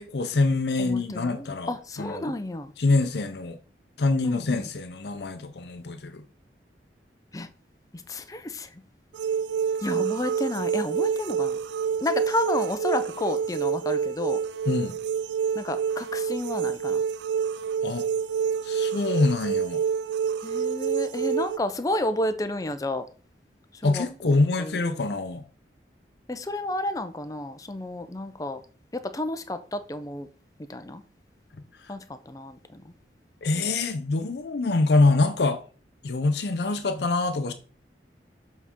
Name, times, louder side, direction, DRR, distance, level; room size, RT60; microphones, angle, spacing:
voice 1, 0.0-1.7 2.0-2.3 2.8-3.6 4.0-6.2 14.7-15.0 17.8-18.1 18.6-19.8 23.8-25.4 33.4-35.6 36.0-37.5, left 3 dB, 70° left, 0.6 m, -25 dB
voice 2, 0.8-2.7 4.2-4.7 7.3-7.5 8.1-8.7 9.8-11.6 12.0-14.4 15.6-17.0 20.4-23.0 23.8-24.8 26.3-28.6 28.9-30.3 30.7-31.0 31.9-32.9, left 1 dB, 20° left, 0.5 m, -31 dB
sound 1, 9.1-21.6, right 7 dB, 80° right, 0.3 m, -27 dB
7.1 x 4.0 x 3.7 m
head